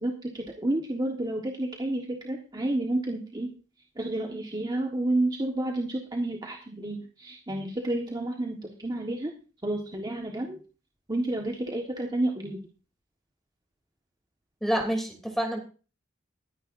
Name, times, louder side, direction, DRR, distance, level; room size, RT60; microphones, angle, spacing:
voice 1, 0.0-3.5 3.9-9.3 9.6-10.6 11.1-12.6, right 1 dB, 20° right, 0 dB, 1.5 m, -30 dB
voice 2, 14.6-15.6, equal, ahead, 3 dB, 3.0 m, -27 dB
22.0 x 10.0 x 2.6 m, 0.35 s
head